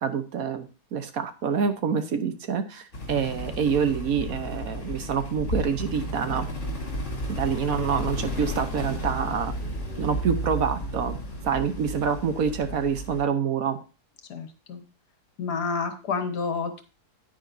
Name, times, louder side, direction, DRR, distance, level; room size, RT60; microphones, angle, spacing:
voice 1, 0.0-6.5 7.3-9.5 10.0-11.2 11.4-13.8, right 6 dB, 65° right, 8 dB, 1.3 m, -27 dB
sound 1, 2.9-13.2, equal, 45° left, 3.2 m, -33 dB
voice 2, 14.3-14.8 15.4-16.8, left 5 dB, 80° left, 7 dB, 1.8 m, -29 dB
10.0 x 9.6 x 2.7 m, 0.33 s
omnidirectional pair, 1.7 m